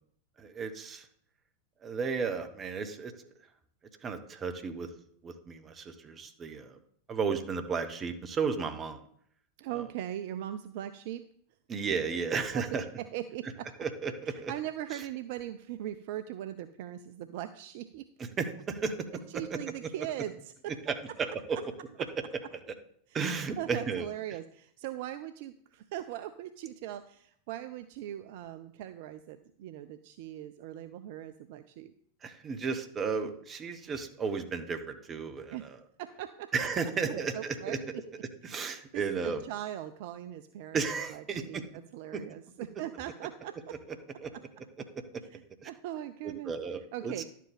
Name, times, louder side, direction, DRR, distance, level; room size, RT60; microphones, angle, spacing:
voice 1, 0.4-1.1 1.8-3.1 4.0-4.9 5.2-6.8 7.1-9.0 11.7-12.8 13.8-14.5 14.9-15.0 18.2-18.9 19.3-19.6 20.9-21.6 23.1-24.1 32.2-35.8 36.5-37.8 38.4-39.4 40.7-41.6 42.1-42.2 44.2-44.3 45.6-45.7 46.2-47.2, right 5 dB, 25° right, 8 dB, 1.0 m, -34 dB
voice 2, 9.6-11.2 12.5-13.7 14.3-18.1 19.3-20.7 21.5-21.6 23.6-31.9 35.5-35.7 36.0-36.5 37.0-38.0 38.5-43.8 44.1-44.9 45.3-46.5 46.9-47.2, right 12 dB, 50° right, 12 dB, 0.4 m, -40 dB
11.0 x 7.4 x 3.6 m, 0.66 s
figure-of-eight pair, 90°, 0 cm